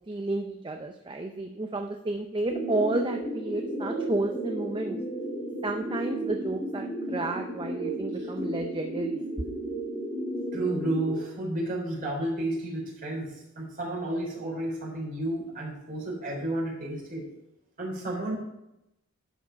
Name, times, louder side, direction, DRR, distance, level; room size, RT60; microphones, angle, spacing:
voice 1, 0.1-5.0 5.6-9.2, right 2 dB, 25° right, 4 dB, 0.5 m, -31 dB
sound 1, 2.5-11.2, right 1 dB, 15° left, 2.0 m, -33 dB
voice 2, 10.5-17.2 17.8-18.3, right 1 dB, 40° right, -2 dB, 3.6 m, -32 dB
11.0 x 4.8 x 5.6 m, 0.86 s
head